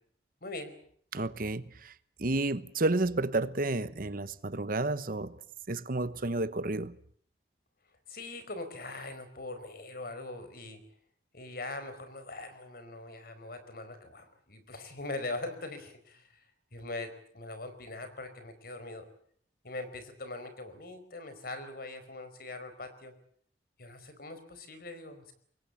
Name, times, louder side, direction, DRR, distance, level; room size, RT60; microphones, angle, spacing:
voice 1, 0.4-0.7 8.1-10.8 11.3-16.4 16.7-19.1 19.6-23.1 23.8-25.3, left 2 dB, 60° left, 4.7 m, -42 dB
voice 2, 1.1-1.9 2.2-5.4 5.7-6.9, right 2 dB, 55° right, 1.1 m, -31 dB
25.5 x 21.5 x 8.5 m
head